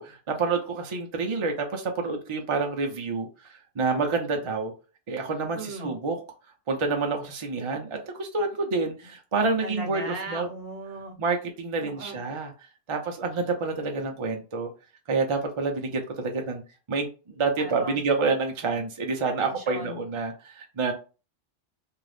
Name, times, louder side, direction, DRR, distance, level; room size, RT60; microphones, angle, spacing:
voice 1, 0.0-4.7 5.1-6.2 6.7-10.5 11.2-12.5 12.9-14.7 15.1-16.6 16.9-20.9, right 4 dB, 40° right, 3 dB, 0.4 m, -28 dB
voice 2, 5.5-6.0 9.6-11.2 11.8-12.2 17.6-18.0 19.4-20.0, right 2 dB, 60° right, 3 dB, 1.0 m, -37 dB
2.7 x 2.4 x 3.3 m, 0.33 s
omnidirectional pair, 1.2 m